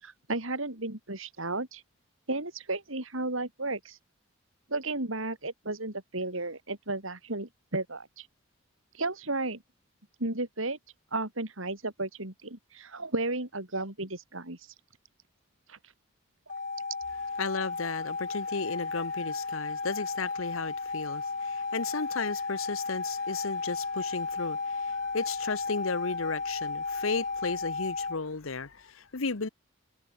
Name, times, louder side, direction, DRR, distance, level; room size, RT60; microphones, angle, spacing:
voice 1, 0.0-1.8 2.3-4.0 4.7-8.3 8.9-9.6 10.2-10.8 11.1-14.6 15.7-15.8, right 2 dB, 75° right, 4.6 m, -33 dB
sound 1, 16.5-28.2, left 4 dB, 40° left, 2.2 m, -34 dB
voice 2, 17.4-29.5, left 4 dB, 80° left, 1.1 m, -34 dB
open air
head